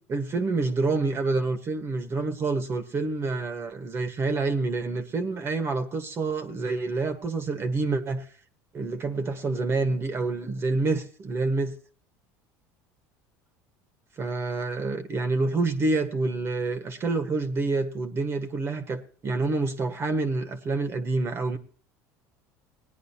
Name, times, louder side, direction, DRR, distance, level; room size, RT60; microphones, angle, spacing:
voice 1, 0.0-8.3 8.7-11.7 14.2-21.6, right 3 dB, 30° right, 8 dB, 1.4 m, -27 dB
18.5 x 10.5 x 2.9 m, 0.40 s
supercardioid pair, 115°, 8 cm